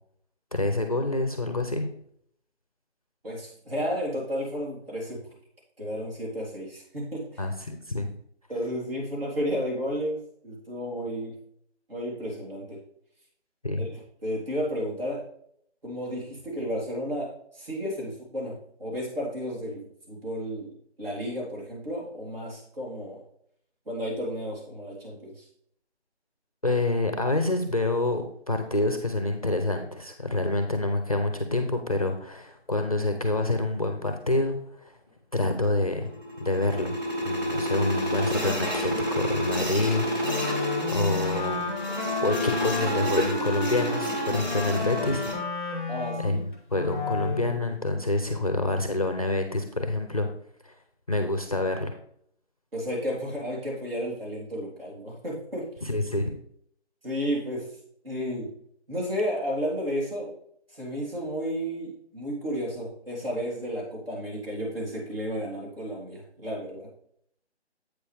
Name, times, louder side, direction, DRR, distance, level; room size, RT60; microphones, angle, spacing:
voice 1, 0.5-1.9 7.4-8.1 13.6-13.9 26.6-34.9 35.3-36.1 36.4-37.0 37.2-41.6 42.2-45.3 46.2-46.4 46.7-50.3 50.6-50.7 51.1-51.9 55.8-56.3, left 2 dB, 30° left, 6 dB, 0.6 m, -27 dB
voice 2, 3.2-5.2 5.8-7.4 8.5-11.3 11.9-12.8 13.8-13.9 14.2-15.3 15.8-20.7 21.0-23.2 23.9-25.5 45.9-46.4 52.7-55.7 57.0-57.7 58.0-58.5 58.9-60.3 60.7-66.9, equal, 55° right, -4 dB, 3.5 m, -32 dB
sound 1, 35.9-45.3, equal, 20° right, 1.4 m, -30 dB
Wind instrument woodwind instrument, 40.2-47.6, left 3 dB, 10° left, 0.9 m, -32 dB
8.1 x 6.6 x 3.4 m, 0.67 s
figure-of-eight pair, 165°, 35 cm